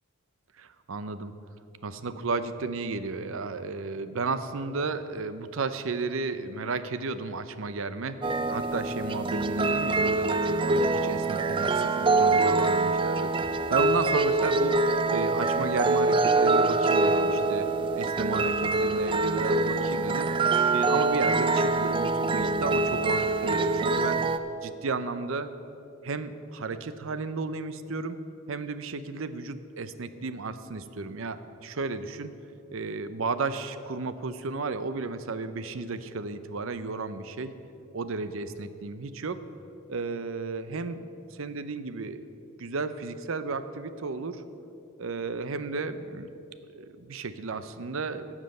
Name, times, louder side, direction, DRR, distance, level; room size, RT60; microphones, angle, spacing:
voice 1, 0.6-1.3 1.8-14.8 15.1-17.7 17.9-24.2 24.6-25.5 26.0-28.2 28.5-32.3 32.7-37.5 37.9-39.4 39.9-41.0 41.3-42.2 42.6-44.4 45.0-46.3 46.7-48.3, right 3 dB, 70° right, 12 dB, 0.6 m, -33 dB
sound 1, 8.2-24.4, right 3 dB, 25° right, 0.3 m, -25 dB
12.0 x 7.4 x 7.7 m, 2.8 s
head